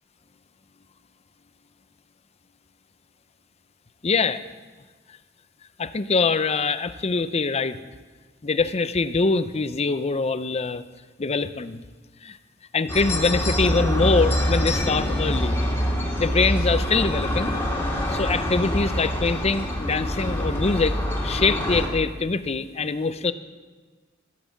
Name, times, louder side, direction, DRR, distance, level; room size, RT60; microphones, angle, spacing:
voice 1, 4.0-4.4 5.8-7.8 8.4-10.8 11.2-11.8 12.2-12.4 12.7-15.6 16.2-17.6 18.1-21.0 21.2-23.3, left 4 dB, 30° left, 12 dB, 0.6 m, -24 dB
sound 1, 12.9-21.9, equal, 15° left, 2.3 m, -25 dB
14.0 x 8.9 x 7.2 m, 1.4 s
head